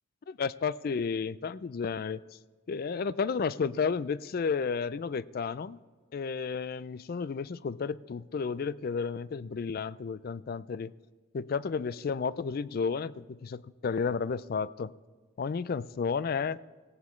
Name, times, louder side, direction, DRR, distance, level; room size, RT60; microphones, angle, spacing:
voice 1, 0.3-2.2 2.7-5.8 6.1-10.9 11.3-14.9 15.4-16.6, left 5 dB, 50° left, 0.3 m, -32 dB
19.0 x 16.5 x 3.2 m
head